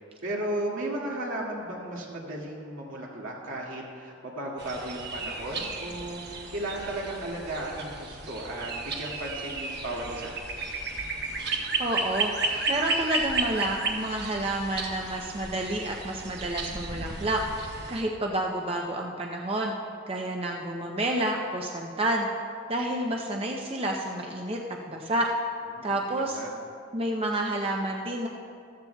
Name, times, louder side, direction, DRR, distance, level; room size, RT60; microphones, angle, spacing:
voice 1, 0.2-10.4 25.7-26.5, right 1 dB, 75° right, -4 dB, 2.2 m, -35 dB
sound 1, 4.6-18.0, right 3 dB, 50° right, 1.1 m, -33 dB
voice 2, 11.8-17.4 17.9-19.7 20.1-22.3 22.7-24.6 24.9-25.3 25.8-26.4 26.9-28.3, right 1 dB, 30° right, 0 dB, 0.6 m, -29 dB
14.0 x 14.0 x 2.3 m, 2.4 s
head